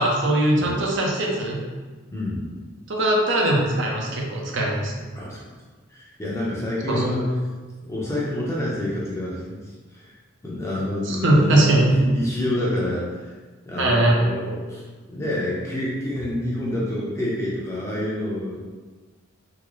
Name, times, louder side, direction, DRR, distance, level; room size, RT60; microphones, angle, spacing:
voice 1, 0.0-1.6 2.9-5.0 6.9-7.1 11.0-11.9 13.8-14.2, right 1 dB, 60° right, -2 dB, 0.6 m, -20 dB
voice 2, 2.1-2.4 5.1-5.4 5.9-7.4 7.8-9.6 9.9-10.1 10.4-13.1 13.7-14.8 15.1-18.6, left 1 dB, 15° left, -6 dB, 0.6 m, -27 dB
3.8 x 2.0 x 3.0 m, 1.3 s
head